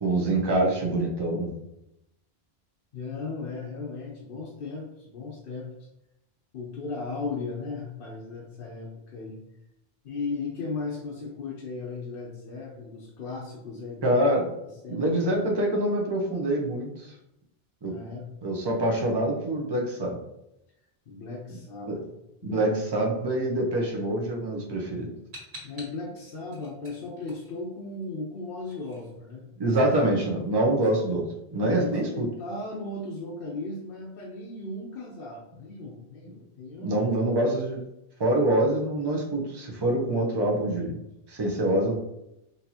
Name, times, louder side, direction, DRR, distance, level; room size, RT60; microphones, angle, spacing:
voice 1, 0.0-1.6 14.0-14.5 14.9-17.1 17.8-17.9 18.4-20.2 21.9-22.0 22.4-25.1 29.6-31.2 31.5-32.3 36.8-37.8 38.2-41.0 41.3-41.9, right 1 dB, 30° right, -1 dB, 0.7 m, -25 dB
voice 2, 2.9-5.7 6.5-9.4 10.0-14.2 14.8-15.0 17.8-18.3 21.1-22.1 22.4-22.7 25.6-29.8 30.7-30.8 31.8-37.1, left 3 dB, 70° left, -2 dB, 0.8 m, -36 dB
sound 1, 25.3-28.0 28.3-30.7, equal, 85° right, 1.8 m, -48 dB
4.4 x 2.7 x 2.8 m, 0.86 s
omnidirectional pair, 1.0 m